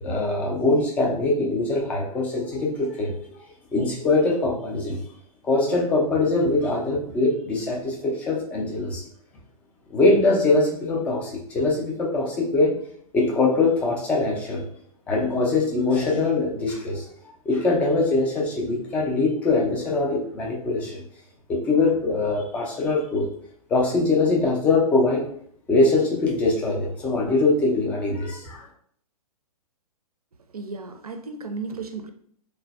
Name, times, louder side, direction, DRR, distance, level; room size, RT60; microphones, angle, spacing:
voice 1, 0.0-3.4 3.7-5.0 5.4-9.0 9.9-12.8 13.1-14.6 15.1-17.1 17.5-21.0 21.5-23.3 23.7-25.3 25.7-28.7, left 3 dB, 5° left, -2 dB, 0.3 m, -22 dB
voice 2, 30.5-32.1, right 4 dB, 75° right, 7 dB, 0.4 m, -34 dB
3.7 x 2.0 x 2.3 m, 0.63 s
figure-of-eight pair, 115°, 19 cm